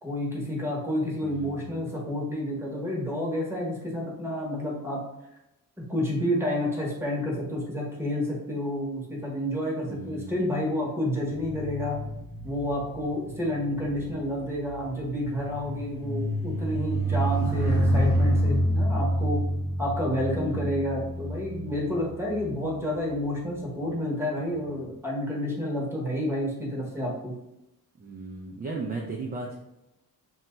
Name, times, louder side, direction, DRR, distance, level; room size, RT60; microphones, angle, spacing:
voice 1, 0.0-5.0 5.9-12.0 12.4-19.4 19.8-27.3, left 1 dB, 5° right, -4 dB, 0.9 m, -30 dB
voice 2, 1.2-1.7 9.8-10.3 20.1-20.7 28.0-29.6, right 3 dB, 25° right, -1 dB, 0.4 m, -36 dB
sound 1, 11.3-22.9 23.6-23.9, right 1 dB, 50° right, 1.1 m, -28 dB
2.7 x 2.2 x 3.0 m, 0.87 s
cardioid pair, 100°, 35 cm